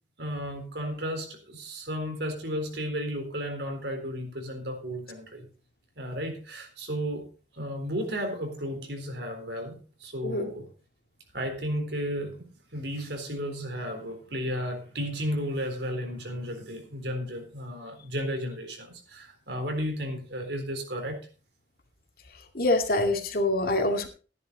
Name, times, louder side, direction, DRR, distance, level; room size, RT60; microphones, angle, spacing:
voice 1, 0.2-5.5 6.0-7.3 7.5-10.7 11.3-21.2, equal, 70° right, 4 dB, 4.0 m, -33 dB
voice 2, 22.5-24.1, left 2 dB, 55° left, 4 dB, 2.3 m, -25 dB
14.0 x 10.5 x 3.9 m, 0.35 s
head